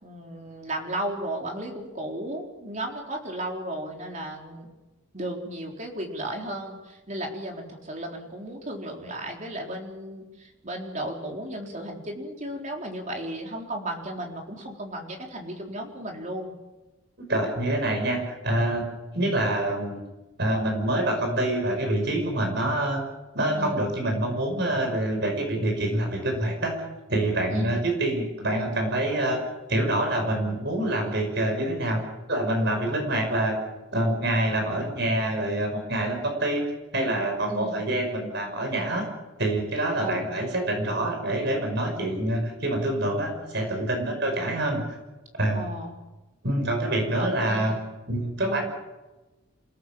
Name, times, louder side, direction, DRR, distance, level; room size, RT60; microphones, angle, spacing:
voice 1, 0.0-4.7 5.1-16.6 23.6-23.9 27.5-27.8 37.5-37.8 40.0-40.3 44.0-44.2 45.5-46.0 47.2-47.7 48.4-48.6, right 1 dB, 35° right, 0 dB, 4.0 m, -35 dB
voice 2, 17.3-20.0 20.4-23.0 23.3-26.8 27.1-29.4 29.7-32.0 32.3-33.6 33.9-36.7 36.9-39.1 39.4-44.8 45.4-45.6 46.4-47.8 48.1-48.6, right 1 dB, 50° right, 3 dB, 5.7 m, -26 dB
28.0 x 17.5 x 7.5 m, 1.1 s
head